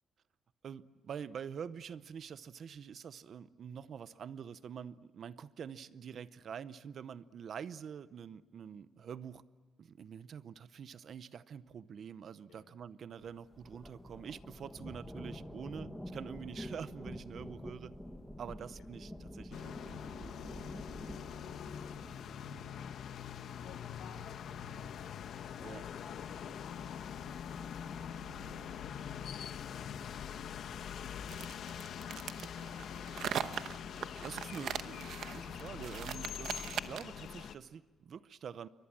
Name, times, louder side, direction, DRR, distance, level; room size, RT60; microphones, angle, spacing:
voice 1, 0.6-9.4 9.8-17.9 18.4-20.4 25.6-25.8 33.9-38.7, right 7 dB, 45° right, 15 dB, 0.7 m, -46 dB
sound 1, 13.2-22.2, equal, 5° left, 1.4 m, -47 dB
sound 2, 19.5-37.5, left 8 dB, 60° left, 1.1 m, -44 dB
voice 2, 23.2-24.9 25.5-27.6 28.2-30.0 33.9-34.5, left 5 dB, 80° left, 7 dB, 5.4 m, -61 dB
sound 3, 31.3-37.2, right 9 dB, 65° right, 1.0 m, -40 dB
28.0 x 24.5 x 7.5 m, 1.4 s
cardioid pair, 175°, 0 cm